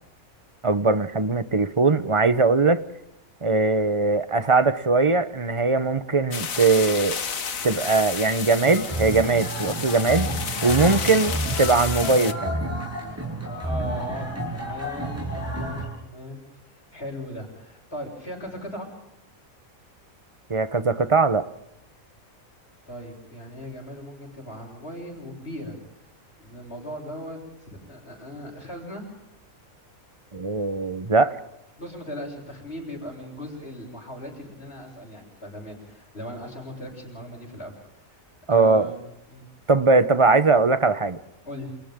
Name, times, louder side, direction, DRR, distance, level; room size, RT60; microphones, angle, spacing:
voice 1, 0.6-2.8 3.4-7.2 7.6-10.3 10.6-12.6 20.5-21.4 30.3-31.3 38.5-38.9 39.7-41.2, right 3 dB, 25° right, 13 dB, 0.9 m, -20 dB
sound 1, 6.3-12.3, left 6 dB, 70° left, 1.7 m, -31 dB
sound 2, 8.6-15.9, right 1 dB, 10° right, 7.0 m, -30 dB
voice 2, 13.6-16.4 16.9-18.9 22.9-25.8 26.4-29.1 31.8-37.7 38.5-39.0 39.3-39.5 41.5-41.7, equal, 45° left, -7 dB, 7.0 m, -38 dB
30.0 x 28.5 x 3.8 m, 0.80 s
omnidirectional pair, 1.5 m